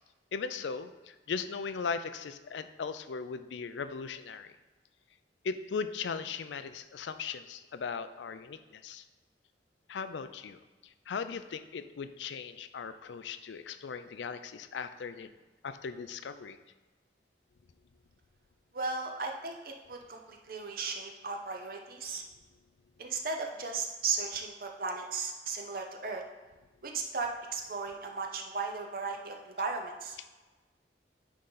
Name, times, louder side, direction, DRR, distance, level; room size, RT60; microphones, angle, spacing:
voice 1, 0.3-4.5 5.4-9.0 9.9-10.6 11.1-15.3 15.6-16.6, left 5 dB, 85° left, 11 dB, 0.4 m, -38 dB
voice 2, 18.7-22.2 23.0-26.2 26.8-30.2, right 4 dB, 50° right, 3 dB, 0.6 m, -36 dB
9.7 x 3.8 x 3.9 m, 1.2 s
head